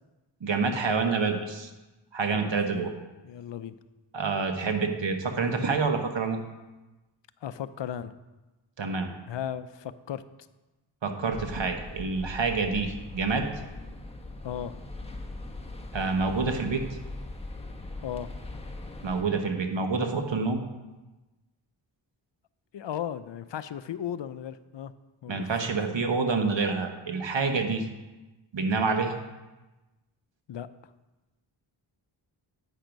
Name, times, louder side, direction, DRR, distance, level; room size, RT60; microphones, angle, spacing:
voice 1, 0.4-1.7 2.1-2.9 4.1-6.4 8.8-9.1 11.0-13.4 15.9-16.8 19.0-20.6 25.3-27.8 28.5-29.2, right 4 dB, 60° right, 5 dB, 1.3 m, -27 dB
voice 2, 2.3-2.9 3.2-3.8 7.4-8.1 9.3-10.2 14.4-14.7 18.0-18.3 22.7-24.9 25.2-25.6 30.5-30.7, left 9 dB, 60° left, 14 dB, 0.6 m, -36 dB
sound 1, 11.3-19.2, left 2 dB, 10° left, 1.2 m, -40 dB
9.0 x 5.9 x 5.2 m, 1.1 s
cardioid pair, 45°, 49 cm